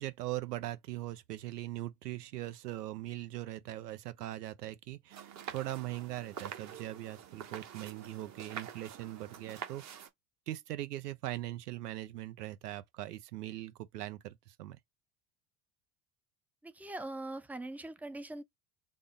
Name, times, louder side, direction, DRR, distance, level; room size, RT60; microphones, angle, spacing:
voice 1, 0.0-9.8 10.5-14.8, right 15 dB, 80° right, 0.7 m, -40 dB
sound 1, 5.1-10.1, right 8 dB, 35° right, 0.9 m, -46 dB
voice 2, 16.6-18.4, right 2 dB, 5° right, 0.4 m, -42 dB
3.7 x 2.0 x 3.8 m
hypercardioid pair, 70°, 46 cm